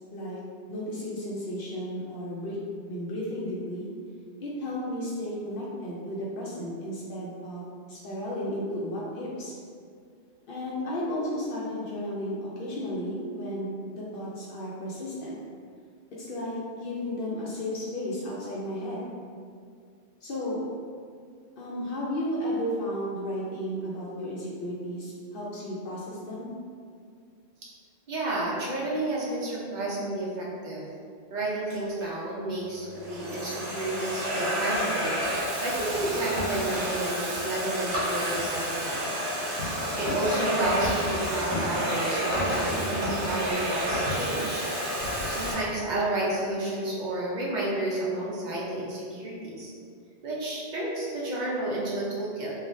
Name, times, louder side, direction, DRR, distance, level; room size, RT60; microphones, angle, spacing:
voice 1, 0.7-2.6 2.9-3.9 4.4-9.5 10.5-15.4 16.2-19.0 20.2-20.6 21.6-26.5, equal, 60° left, -6 dB, 0.6 m, -33 dB
voice 2, 28.1-30.8 31.3-35.1 35.6-39.0 39.9-44.7 45.3-49.7 50.2-52.5, right 1 dB, 50° right, -5 dB, 0.6 m, -31 dB
Domestic sounds home sounds, 31.7-32.1 32.8-45.5, equal, 80° right, 1.1 m, -30 dB
3.2 x 2.3 x 2.6 m, 2.2 s
omnidirectional pair, 1.2 m